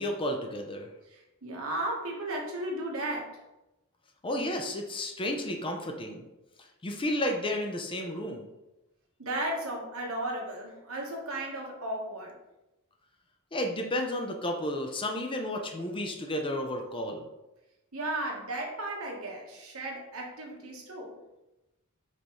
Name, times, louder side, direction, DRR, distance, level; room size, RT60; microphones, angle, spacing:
voice 1, 0.0-0.9 4.2-6.2 6.8-8.4 13.5-17.2, left 1 dB, 25° left, 3 dB, 0.5 m, -32 dB
voice 2, 1.1-3.3 9.2-12.3 17.9-21.1, right 1 dB, 70° right, -1 dB, 1.1 m, -35 dB
5.1 x 3.4 x 3.0 m, 0.97 s
head